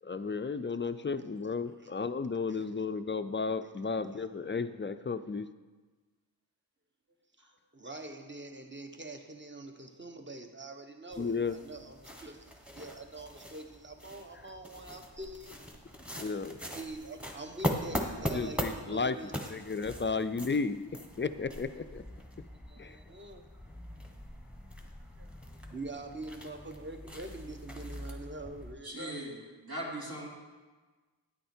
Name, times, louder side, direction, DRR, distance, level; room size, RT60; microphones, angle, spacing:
voice 1, 0.0-5.5 11.2-11.5 16.2-16.6 18.3-19.1 19.5-20.8 21.2-22.0 22.8-23.0, left 4 dB, 30° left, 11 dB, 0.4 m, -33 dB
voice 2, 1.4-1.9 2.5-2.7 3.6-3.7 7.4-15.5 16.6-19.5 21.7-21.8 22.7-23.5 24.0-24.1 24.8-25.4 25.7-29.2, right 2 dB, 25° right, 5 dB, 1.1 m, -45 dB
sound 1, 11.1-28.7, equal, 5° right, 1.3 m, -41 dB
voice 3, 28.8-29.4 29.6-30.3, right 1 dB, 55° right, -4 dB, 2.7 m, -39 dB
9.3 x 9.0 x 4.4 m, 1.3 s
wide cardioid pair, 40°, 43 cm